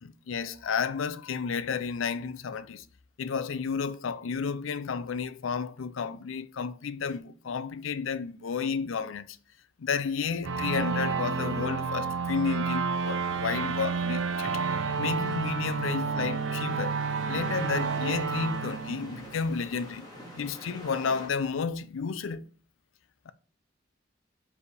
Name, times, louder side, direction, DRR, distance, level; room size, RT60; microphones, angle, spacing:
voice 1, 0.0-2.9 3.2-9.4 9.8-14.5 15.0-17.0 17.3-20.1 20.3-22.5, left 5 dB, 80° left, 0.5 m, -32 dB
sound 1, 10.4-19.8, right 5 dB, 75° right, 0.5 m, -30 dB
sound 2, 12.9-21.3, equal, 20° left, 2.0 m, -46 dB
4.9 x 4.8 x 5.0 m
head